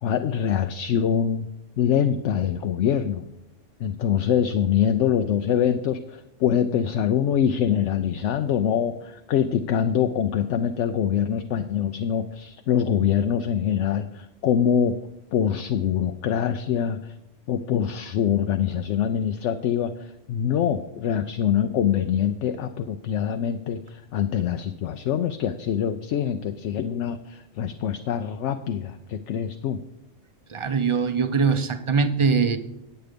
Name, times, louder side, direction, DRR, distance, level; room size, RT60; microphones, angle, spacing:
voice 1, 0.0-1.5 1.8-3.3 3.8-15.0 15.3-17.1 17.5-29.8, left 8 dB, 70° left, 8 dB, 0.8 m, -24 dB
voice 2, 30.5-32.6, right 5 dB, 35° right, 9 dB, 0.5 m, -22 dB
9.3 x 9.1 x 5.1 m, 0.91 s
omnidirectional pair, 1.3 m